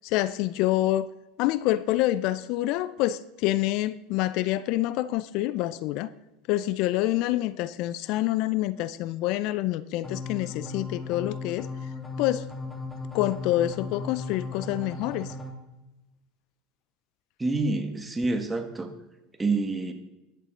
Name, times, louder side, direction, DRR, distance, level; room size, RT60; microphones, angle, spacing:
voice 1, 0.0-1.1 1.4-6.1 6.5-11.7 12.2-12.4 13.1-15.3, left 15 dB, 60° left, 0.5 m, -27 dB
sound 1, 10.0-15.5, left 3 dB, 15° left, 2.4 m, -36 dB
voice 2, 17.4-18.9 19.4-19.9, right 3 dB, 15° right, 1.8 m, -27 dB
14.0 x 11.0 x 3.9 m
hypercardioid pair, 85°, 0 cm